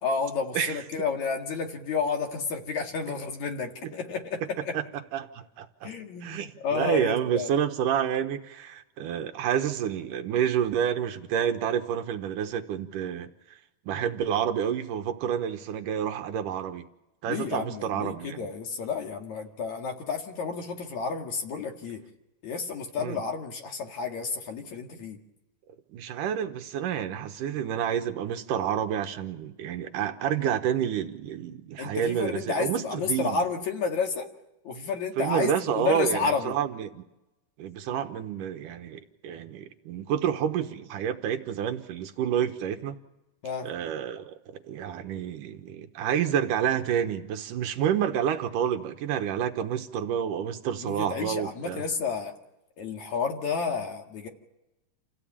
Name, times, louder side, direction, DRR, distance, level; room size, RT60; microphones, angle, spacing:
voice 1, 0.0-4.8 5.8-7.5 17.3-22.0 22.4-25.2 31.8-34.3 34.6-36.5 43.4-43.7 50.8-52.3 52.8-54.3, left 5 dB, 50° left, 2 dB, 2.9 m, -31 dB
voice 2, 4.7-5.9 6.2-13.3 13.9-16.9 17.2-18.5 23.0-23.2 25.9-33.4 35.2-37.0 37.6-43.0 43.6-51.8, right 9 dB, 70° right, 7 dB, 2.2 m, -29 dB
28.5 x 16.0 x 8.7 m, 0.98 s
omnidirectional pair, 4.7 m